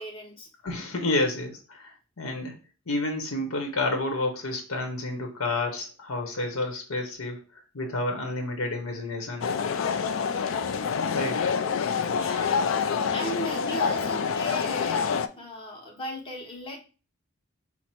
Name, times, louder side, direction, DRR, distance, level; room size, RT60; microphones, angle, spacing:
voice 1, 0.0-0.5 12.1-16.8, left 1 dB, 25° left, 0 dB, 1.0 m, -37 dB
voice 2, 0.6-2.5 2.9-9.5 11.1-11.4, left 2 dB, 90° left, 3 dB, 1.0 m, -30 dB
sound 1, 9.4-15.3, left 6 dB, 70° left, 0.4 m, -27 dB
5.8 x 2.1 x 4.3 m, 0.34 s
head